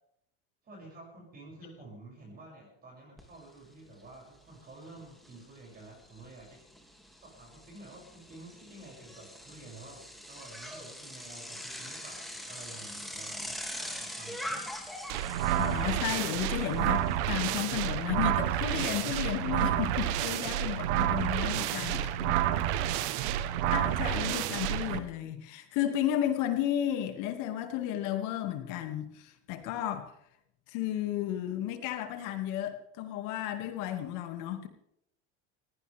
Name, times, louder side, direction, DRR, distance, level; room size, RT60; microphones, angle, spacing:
voice 1, 0.6-14.7 21.4-23.4, right 2 dB, 25° right, -2 dB, 7.2 m, -51 dB
Bicycle, 3.2-3.3 3.6-17.4, equal, ahead, 2.6 m, -43 dB
sound 1, 15.1-25.0, right 11 dB, 75° right, 1.3 m, -29 dB
voice 2, 15.6-22.4 23.7-30.1 30.7-34.7, left 11 dB, 60° left, 6 dB, 2.4 m, -33 dB
20.5 x 17.5 x 3.6 m, 0.79 s
supercardioid pair, 140°, 34 cm